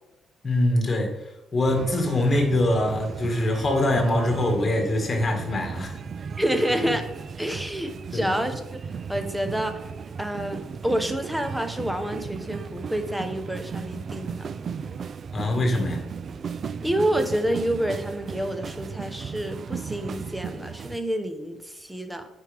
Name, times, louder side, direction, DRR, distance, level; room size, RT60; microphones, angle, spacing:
voice 1, 0.4-1.2 1.5-6.0 8.1-8.3 15.3-16.0, left 1 dB, 35° left, 2 dB, 1.9 m, -23 dB
sound 1, 1.6-21.0, right 6 dB, 50° right, 0.3 m, -36 dB
voice 2, 6.4-7.1 7.4-8.6 9.1-9.8 10.2-14.5 16.8-22.3, equal, 5° right, 8 dB, 0.9 m, -28 dB
9.1 x 5.2 x 3.5 m, 0.99 s
cardioid pair, 90°, 0 cm